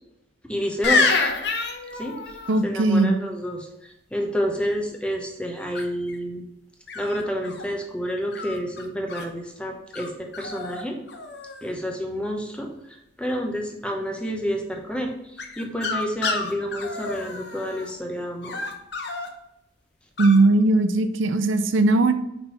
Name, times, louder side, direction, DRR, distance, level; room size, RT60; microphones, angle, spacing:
voice 1, 0.5-1.2 1.9-6.4 6.9-11.0 11.6-18.6, equal, 5° left, 1 dB, 0.9 m, -29 dB
sound 1, 0.8-2.6 5.7-6.2 6.9-7.7 8.3-9.3 9.9-10.1 10.3-10.8 11.1-11.7 15.4-17.9 18.4-19.3 20.2-20.4, left 4 dB, 55° left, 0.9 m, -28 dB
voice 2, 2.5-3.1 20.2-22.1, right 2 dB, 75° right, 10 dB, 0.5 m, -19 dB
5.4 x 4.4 x 5.7 m, 0.88 s
head